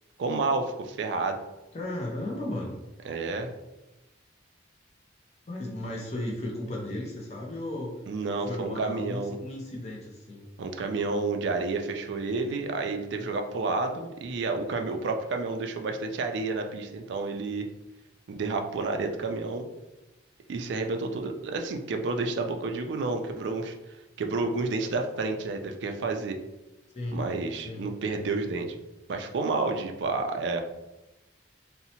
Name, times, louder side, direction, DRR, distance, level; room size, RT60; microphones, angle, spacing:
voice 1, 0.2-1.4 3.0-3.5 8.1-9.4 10.6-17.7 18.3-19.7 20.5-23.7 24.2-26.4 27.1-28.7 29.1-30.6, right 3 dB, 65° right, 5 dB, 0.3 m, -30 dB
voice 2, 1.7-2.8 5.5-7.9 8.5-10.5 26.9-27.3 27.6-27.9 28.4-28.6, left 1 dB, 35° left, -2 dB, 0.5 m, -35 dB
2.7 x 2.0 x 2.8 m, 1.0 s
head